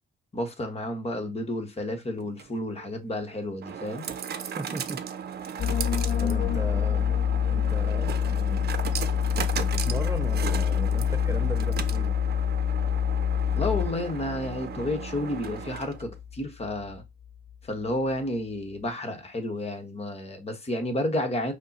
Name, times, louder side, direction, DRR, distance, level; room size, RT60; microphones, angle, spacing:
voice 1, 0.3-4.1 13.5-17.0 17.6-21.5, left 1 dB, 30° left, 1.2 m, -31 dB
sound 1, 2.2-16.2, right 8 dB, 55° right, 0.7 m, -37 dB
voice 2, 4.4-5.1 6.2-7.2 7.5-8.8 9.6-12.2, right 3 dB, 15° right, 0.3 m, -37 dB
sound 2, 5.6-17.0 17.2-17.6, left 9 dB, 50° left, 0.6 m, -27 dB
5.2 x 2.2 x 4.1 m
cardioid pair, 90°, 20 cm